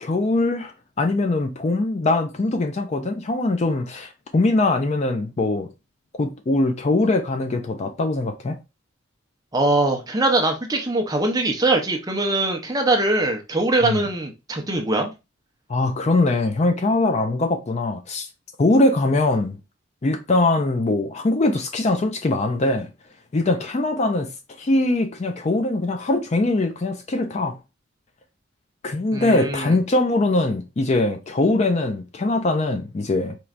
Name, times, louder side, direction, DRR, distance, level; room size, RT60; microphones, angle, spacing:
voice 1, 0.0-5.7 6.1-8.6 13.8-14.1 15.7-18.3 18.6-19.6 20.0-22.9 23.3-24.3 24.6-27.6 28.8-33.4, left 2 dB, 30° left, 0.4 m, -22 dB
voice 2, 9.5-15.1 29.1-29.7, right 2 dB, 20° right, 0.7 m, -22 dB
4.4 x 3.1 x 2.4 m
head